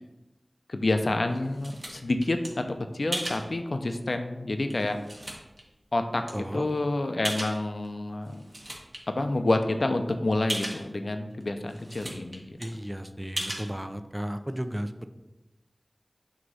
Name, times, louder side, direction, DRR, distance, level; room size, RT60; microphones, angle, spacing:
voice 1, 0.7-5.0 5.9-8.4 9.2-12.6, left 2 dB, 70° left, 7 dB, 0.6 m, -28 dB
sound 1, 1.1-2.5 3.1-3.4 4.1-4.2 4.7-5.6 6.3-6.4 7.2-7.9 8.2-9.0 9.4-9.5 9.7-9.8 10.5-10.8 11.4-11.5 11.7-12.4 12.6-12.7 13.4-13.7, right 1 dB, 45° right, 1.5 m, -35 dB
voice 2, 6.3-6.7 12.6-15.1, equal, 15° right, 9 dB, 0.4 m, -34 dB
6.3 x 3.0 x 5.4 m, 1.0 s
wide cardioid pair, 45°, 0 cm